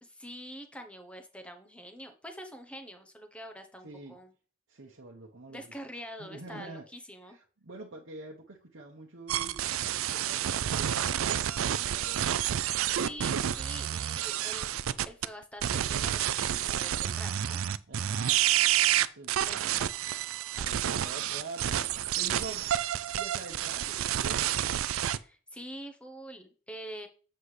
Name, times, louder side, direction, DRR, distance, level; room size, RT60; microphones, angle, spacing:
voice 1, 0.0-4.3 5.5-7.4 13.0-14.7 15.0-17.6 19.4-19.9 20.5-20.6 21.0-21.1 25.1-27.1, equal, 5° left, 0.9 m, -45 dB
voice 2, 3.8-4.2 4.7-5.7 6.2-6.8 7.3-11.2 11.7-12.3 17.9-19.7 20.6-21.7 22.2-25.0, right 3 dB, 65° right, 1.0 m, -46 dB
sound 1, 9.3-15.3 15.6-25.2, right 11 dB, 85° right, 0.4 m, -29 dB
7.8 x 6.6 x 3.3 m
head